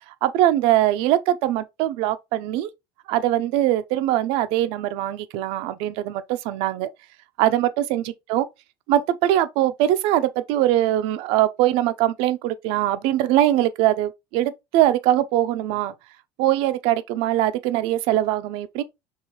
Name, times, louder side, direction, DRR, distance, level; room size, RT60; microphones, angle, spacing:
voice 1, 0.2-2.7 3.1-6.9 7.4-8.5 8.9-15.9 16.4-18.8, right 13 dB, 70° right, 0.5 m, -22 dB
4.8 x 3.1 x 2.9 m
supercardioid pair, 120°, 10 cm